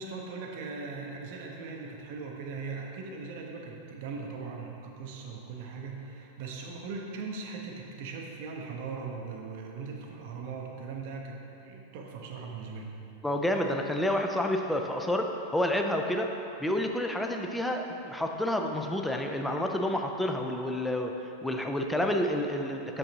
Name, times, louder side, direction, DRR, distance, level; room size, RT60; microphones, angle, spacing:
voice 1, 0.0-12.9, right 4 dB, 50° right, 1 dB, 0.7 m, -39 dB
voice 2, 13.2-16.3 16.6-21.1 21.4-23.0, left 1 dB, 5° left, 3 dB, 0.4 m, -29 dB
6.8 x 5.3 x 2.8 m, 2.9 s
figure-of-eight pair, 90°, 0 cm